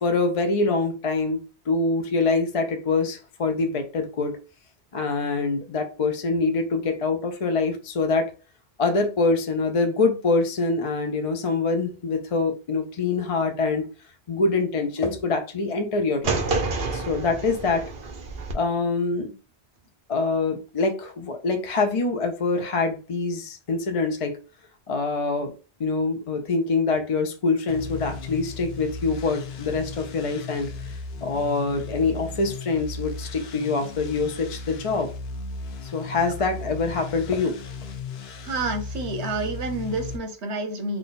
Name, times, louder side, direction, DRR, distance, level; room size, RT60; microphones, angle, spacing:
voice 1, 0.0-1.4 1.7-4.4 4.9-8.3 8.8-13.9 14.3-16.4 16.9-17.8 18.5-19.3 20.1-24.4 24.9-25.5 25.8-35.1 35.8-37.6, left 3 dB, 40° left, 5 dB, 0.5 m, -25 dB
sound 1, 16.2-18.5, right 3 dB, 65° right, 1.0 m, -28 dB
sound 2, 27.7-40.2, left 4 dB, 70° left, 0.8 m, -36 dB
voice 2, 38.4-41.0, right 2 dB, 85° right, 7 dB, 1.1 m, -29 dB
3.6 x 2.3 x 3.9 m, 0.33 s
omnidirectional pair, 1.1 m